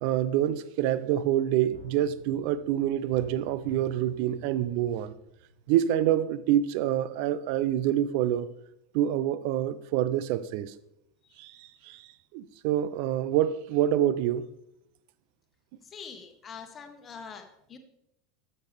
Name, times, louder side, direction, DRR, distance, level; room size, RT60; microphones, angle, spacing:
voice 1, 0.0-5.1 5.7-8.5 8.9-10.7 11.4-12.0 12.3-14.5, right 11 dB, 55° right, 0.5 m, -26 dB
sound 1, 1.7-6.4 6.7-6.8, right 1 dB, 75° right, 1.5 m, -51 dB
voice 2, 15.9-17.8, left 6 dB, 30° left, 1.4 m, -44 dB
13.0 x 6.6 x 3.5 m
figure-of-eight pair, 80°, 0 cm